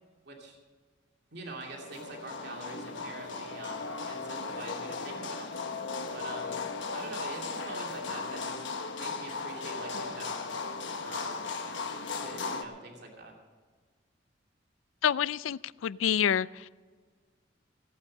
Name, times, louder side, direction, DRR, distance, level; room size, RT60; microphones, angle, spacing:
voice 1, 0.2-0.6 1.3-5.5 6.1-6.6 6.9-8.7 9.0-10.5 11.0-11.5 12.2-13.3, right 2 dB, 60° right, 2.7 m, -44 dB
sound 1, 1.5-12.6, left 4 dB, 70° left, 1.3 m, -37 dB
voice 2, 15.0-16.7, left 8 dB, 90° left, 0.4 m, -28 dB
17.5 x 8.7 x 6.5 m
head